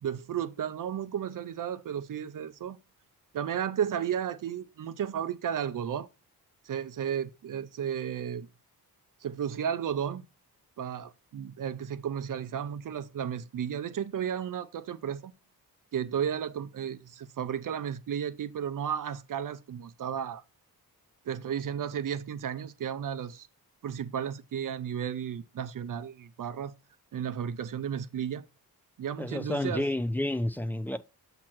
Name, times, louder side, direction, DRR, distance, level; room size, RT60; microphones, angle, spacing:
voice 1, 0.0-2.8 3.3-6.1 6.6-8.5 9.2-10.2 10.8-15.3 15.9-20.4 21.3-23.5 23.8-26.8 27.1-28.5 29.0-29.9, right 8 dB, 55° right, 0.6 m, -33 dB
voice 2, 29.2-31.0, left 1 dB, 5° left, 0.4 m, -30 dB
7.5 x 2.9 x 5.9 m
wide cardioid pair, 155°, 37 cm